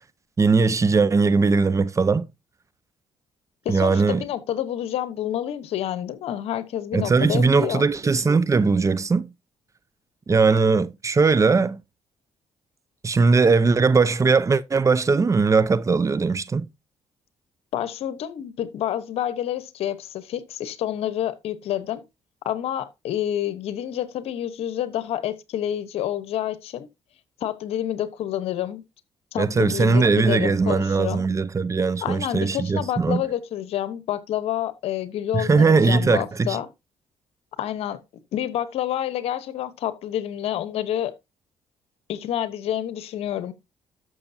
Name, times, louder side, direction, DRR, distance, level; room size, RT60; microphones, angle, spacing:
voice 1, 0.4-2.3 3.7-4.2 6.9-9.3 10.3-11.8 13.0-16.7 29.4-33.2 35.3-36.6, right 4 dB, 30° right, 0.7 m, -20 dB
voice 2, 3.6-7.9 17.7-22.0 22.4-26.9 27.4-28.8 29.3-31.2 32.0-36.7 37.6-38.0 38.3-41.1 42.1-43.5, left 11 dB, 75° left, 1.1 m, -28 dB
12.5 x 6.4 x 2.7 m
cardioid pair, 75°, 10 cm